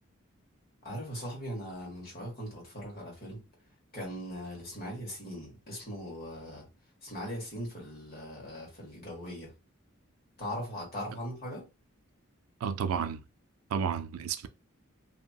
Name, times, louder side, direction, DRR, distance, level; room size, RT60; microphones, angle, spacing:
voice 1, 0.8-3.4 3.9-6.7 7.0-9.5 10.4-11.6, equal, 45° left, 1.4 m, -40 dB
voice 2, 12.6-13.2 13.7-14.5, right 7 dB, 85° right, 0.4 m, -31 dB
2.8 x 2.8 x 2.3 m
head